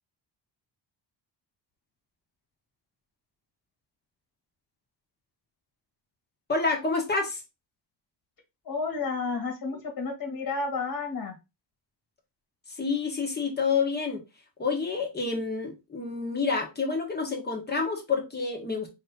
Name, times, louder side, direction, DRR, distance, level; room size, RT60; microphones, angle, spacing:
voice 1, 6.5-7.4 12.8-14.2 14.6-18.9, left 4 dB, 25° left, 1.2 m, -28 dB
voice 2, 8.7-11.4, left 4 dB, 55° left, 1.9 m, -31 dB
4.7 x 2.9 x 3.6 m
cardioid pair, 150°, 43 cm